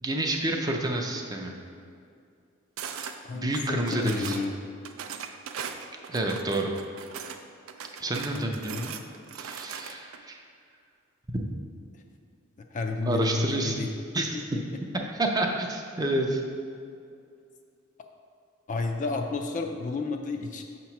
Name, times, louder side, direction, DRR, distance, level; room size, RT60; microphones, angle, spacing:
voice 1, 0.0-1.5 3.3-4.4 6.1-6.7 8.0-8.9 9.4-10.4 11.3-11.4 13.1-13.8 14.1-14.4 15.1-16.4, right 1 dB, 20° right, 2 dB, 0.5 m, -29 dB
sound 1, 2.8-3.2 3.5-4.5 4.8-7.4 7.7-10.2, right 7 dB, 80° right, 0.4 m, -39 dB
voice 2, 3.2-4.5 8.3-8.8 12.7-13.9 14.3-14.4 18.7-20.6, left 3 dB, 40° left, 4 dB, 0.4 m, -31 dB
6.4 x 2.9 x 5.7 m, 2.4 s
head